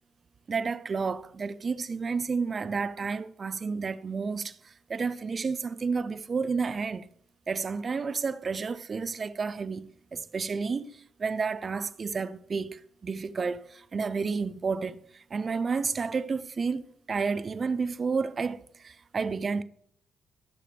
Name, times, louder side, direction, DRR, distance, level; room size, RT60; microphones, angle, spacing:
voice 1, 0.5-4.6 4.9-7.1 7.5-15.0 15.3-18.6 18.8-19.6, right 5 dB, 40° right, 0.5 m, -31 dB
13.5 x 6.7 x 3.4 m
cardioid pair, 90°, 0 cm